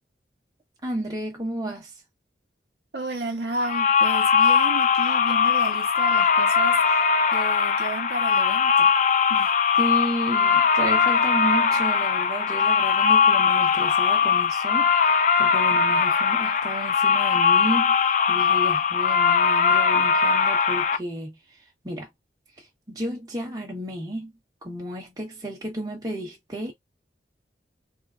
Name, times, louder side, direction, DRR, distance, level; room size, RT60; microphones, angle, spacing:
voice 1, 0.8-1.9 9.8-21.4 21.8-22.1 22.9-24.3 24.6-26.7, right 1 dB, 20° right, 1.2 m, -32 dB
voice 2, 2.9-8.9 9.3-9.5, right 2 dB, 75° right, 1.2 m, -33 dB
sound 1, 3.6-21.0, left 6 dB, 45° left, 0.3 m, -20 dB
3.7 x 2.1 x 2.4 m
head